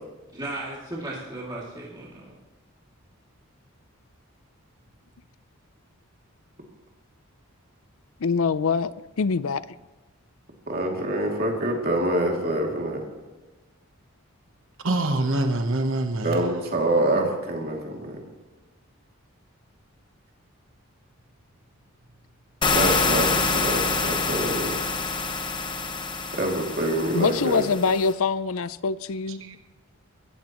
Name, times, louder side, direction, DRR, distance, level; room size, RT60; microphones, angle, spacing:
voice 1, 0.3-2.3, right 2 dB, 20° right, 2.5 m, -35 dB
voice 2, 8.2-9.6 27.1-29.6, left 5 dB, 70° left, 0.5 m, -24 dB
voice 3, 10.7-13.0 16.2-18.2 22.7-24.8 26.3-27.6, right 1 dB, 45° right, 2.7 m, -26 dB
voice 4, 14.8-16.4 29.3-29.6, right 2 dB, 65° right, 1.1 m, -25 dB
sound 1, 22.6-28.1, left 4 dB, 20° left, 1.0 m, -26 dB
23.5 x 14.5 x 3.1 m
head